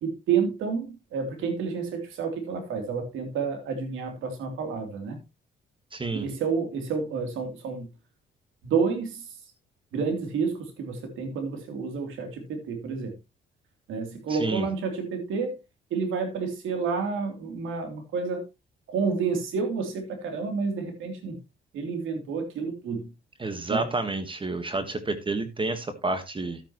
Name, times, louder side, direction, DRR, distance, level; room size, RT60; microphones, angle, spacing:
voice 1, 0.0-5.2 6.1-7.9 8.6-9.3 9.9-13.1 13.9-15.5 15.9-18.4 18.9-21.4 21.7-23.1 23.7-23.9, right 5 dB, 85° right, 3.1 m, -29 dB
voice 2, 5.9-6.3 14.3-14.7 23.4-26.6, right 3 dB, 25° right, 1.4 m, -30 dB
12.5 x 9.1 x 3.0 m
cardioid pair, 90°, 20 cm